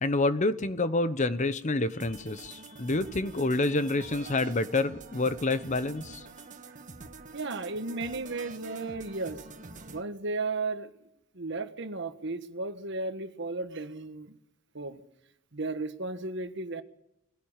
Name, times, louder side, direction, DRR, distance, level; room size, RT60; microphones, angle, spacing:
voice 1, 0.0-6.2, left 2 dB, 35° left, 13 dB, 0.9 m, -28 dB
sound 1, 2.0-10.0, right 3 dB, 40° right, 1.6 m, -46 dB
voice 2, 7.3-9.4 9.9-10.9 11.3-14.4 14.7-15.0 15.5-16.8, right 3 dB, 60° right, 9 dB, 1.4 m, -34 dB
22.0 x 16.0 x 7.3 m, 0.87 s
head